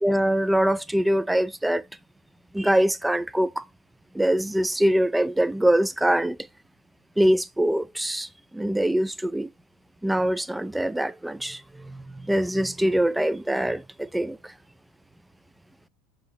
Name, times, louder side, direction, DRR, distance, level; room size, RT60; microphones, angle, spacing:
voice 1, 0.0-1.8 2.5-3.6 4.1-6.4 7.2-9.5 10.0-14.5, right 1 dB, 5° right, 0.4 m, -23 dB
6.3 x 3.7 x 4.6 m
hypercardioid pair, 80°, 0 cm